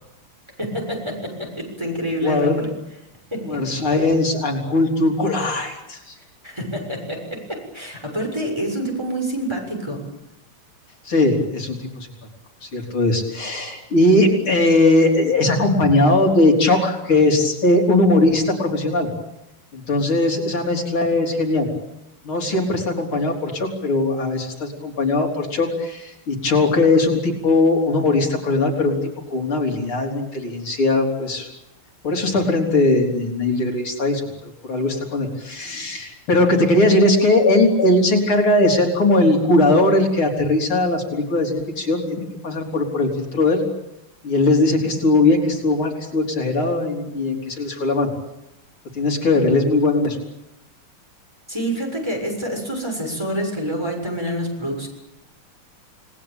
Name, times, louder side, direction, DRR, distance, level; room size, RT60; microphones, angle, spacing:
voice 1, 0.6-2.7 3.3-3.6 6.4-10.0 51.5-54.9, equal, 10° right, 1 dB, 6.7 m, -27 dB
voice 2, 2.2-2.6 3.5-6.1 11.1-12.1 12.6-19.1 19.7-21.7 22.2-29.0 29.3-31.5 32.0-43.6 44.2-48.1 48.9-50.2, left 2 dB, 70° left, 1 dB, 4.5 m, -19 dB
29.5 x 19.5 x 8.9 m, 0.93 s
omnidirectional pair, 2.4 m